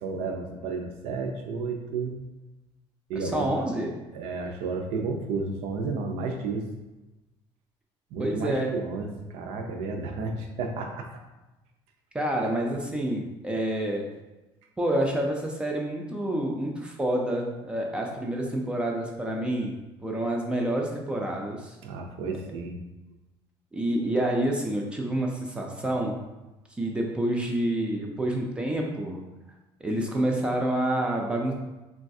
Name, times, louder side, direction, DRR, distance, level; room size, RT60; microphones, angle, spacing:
voice 1, 0.0-2.1 3.1-3.5 4.1-6.6 8.1-11.2 21.8-22.8, right 4 dB, 80° right, 4 dB, 0.5 m, -32 dB
voice 2, 3.1-3.9 8.2-8.8 12.1-14.1 14.8-19.7 20.0-21.8 23.7-26.2 26.8-29.2 29.8-31.5, right 1 dB, 10° right, 0 dB, 0.3 m, -28 dB
3.9 x 2.3 x 2.6 m, 1.1 s
cardioid pair, 165°, 10 cm